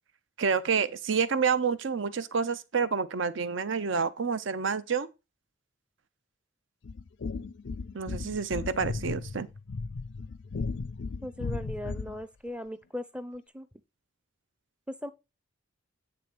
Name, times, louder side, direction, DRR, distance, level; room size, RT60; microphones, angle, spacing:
voice 1, 0.4-5.1 7.9-9.5, right 5 dB, 70° right, 0.7 m, -28 dB
sound 1, 6.8-12.2, left 4 dB, 60° left, 0.4 m, -36 dB
voice 2, 11.2-13.7 14.9-15.1, equal, 5° right, 0.5 m, -38 dB
8.9 x 3.5 x 5.9 m
head